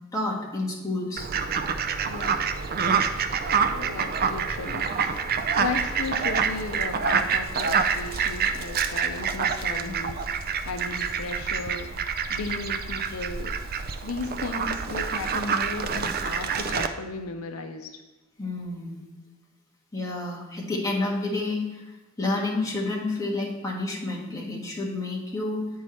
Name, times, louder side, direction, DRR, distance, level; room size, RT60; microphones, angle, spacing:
voice 1, 0.1-1.3 18.4-19.0 19.9-21.8 22.2-25.7, left 2 dB, 15° left, -3 dB, 1.5 m, -29 dB
Fowl, 1.2-16.9, right 6 dB, 45° right, 0.5 m, -27 dB
voice 2, 2.1-2.5 3.7-5.2 5.6-13.6 14.0-18.0, left 3 dB, 80° left, 6 dB, 0.6 m, -35 dB
9.1 x 4.7 x 4.3 m, 1.1 s
head